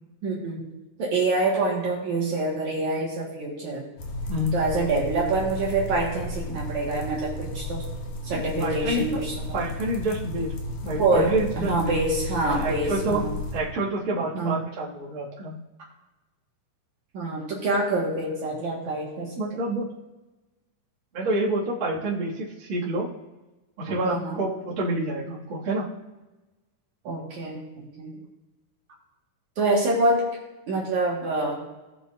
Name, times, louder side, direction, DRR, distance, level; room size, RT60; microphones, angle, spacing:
voice 1, 0.2-0.6 1.0-3.9 4.5-7.8 8.2-9.6 11.0-13.3 14.3-14.6 17.1-19.3 24.0-24.4 27.0-27.6 28.0-28.1 29.6-30.3 30.7-31.6, right 2 dB, 60° right, -4 dB, 2.6 m, -26 dB
sound 1, 4.0-13.6, left 1 dB, 90° left, 3.2 m, -33 dB
voice 2, 8.3-9.0 9.5-10.5 10.8-12.0 12.5-13.2 13.5-15.6 19.4-19.9 21.1-23.1 23.8-25.9, right 1 dB, 40° right, -7 dB, 2.2 m, -28 dB
18.5 x 6.6 x 2.5 m, 1.1 s
omnidirectional pair, 4.3 m